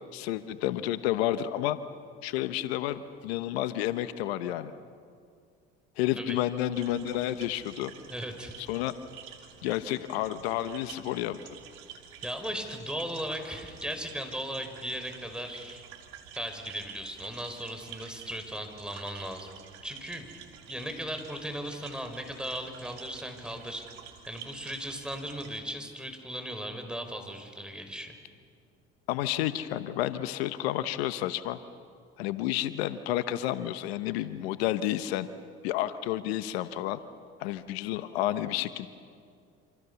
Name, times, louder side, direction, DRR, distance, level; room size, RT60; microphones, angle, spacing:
voice 1, 0.1-1.8 2.2-4.7 6.0-7.9 8.6-8.9 9.6-11.4 29.1-31.6 32.2-35.3 35.6-37.0 37.4-38.9, left 13 dB, 85° left, 12 dB, 1.1 m, -30 dB
sound 1, 6.7-25.6, right 8 dB, 80° right, 2.9 m, -49 dB
voice 2, 8.1-8.5 12.2-15.8 16.3-19.5 19.8-20.4 20.7-23.9 24.3-28.2, equal, 5° right, 5 dB, 5.6 m, -37 dB
28.0 x 27.0 x 7.1 m, 2.2 s
hypercardioid pair, 65°, 30 cm